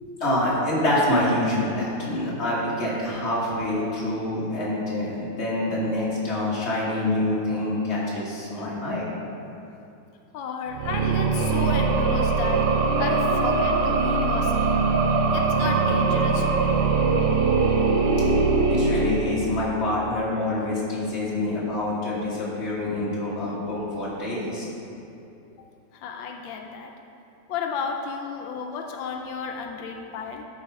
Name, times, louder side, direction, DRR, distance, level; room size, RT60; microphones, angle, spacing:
voice 1, 0.2-9.1 18.7-24.7, left 1 dB, 35° left, -6 dB, 1.9 m, -26 dB
voice 2, 10.3-14.8 15.3-16.9 25.6-25.7 25.9-26.9 27.5-30.5, left 5 dB, 90° left, 3 dB, 1.4 m, -33 dB
sound 1, 10.7-19.8, right 4 dB, 70° right, 1.3 m, -22 dB
11.0 x 4.1 x 4.7 m, 2.7 s
omnidirectional pair, 2.0 m